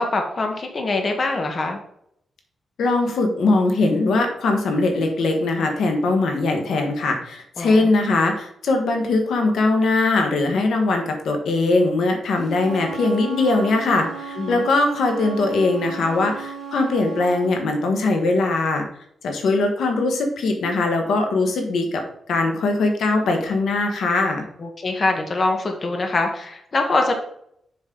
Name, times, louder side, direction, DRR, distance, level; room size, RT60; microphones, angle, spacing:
voice 1, 0.0-1.8 7.6-7.9 14.4-14.6 24.6-27.1, left 2 dB, 40° left, 4 dB, 1.4 m, -23 dB
voice 2, 2.8-18.9 19.2-24.4, left 3 dB, 80° left, 4 dB, 1.4 m, -21 dB
Wind instrument woodwind instrument, 12.4-17.5, right 5 dB, 25° right, 2.6 m, -35 dB
7.3 x 6.2 x 3.8 m, 0.70 s
cardioid pair, 110°, 0 cm